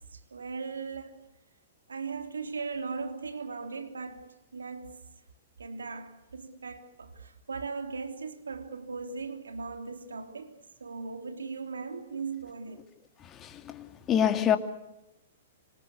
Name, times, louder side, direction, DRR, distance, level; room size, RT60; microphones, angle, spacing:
voice 1, 0.1-1.2 1.9-5.0 5.6-12.9, right 4 dB, 80° right, 3.3 m, -38 dB
voice 2, 13.4-14.6, left 9 dB, 25° left, 2.5 m, -26 dB
26.5 x 26.0 x 8.4 m
figure-of-eight pair, 110°, 0 cm